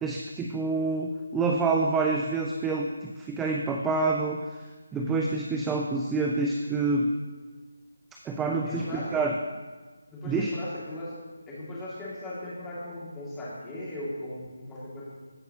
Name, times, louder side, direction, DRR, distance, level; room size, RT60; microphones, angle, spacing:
voice 1, 0.0-7.1 8.2-9.4 10.2-10.5, right 3 dB, 10° right, 1 dB, 0.4 m, -27 dB
voice 2, 4.9-5.3 8.6-9.3 10.1-15.0, left 1 dB, 10° left, -8 dB, 2.3 m, -37 dB
15.5 x 5.4 x 2.9 m, 1.4 s
figure-of-eight pair, 155°, 0 cm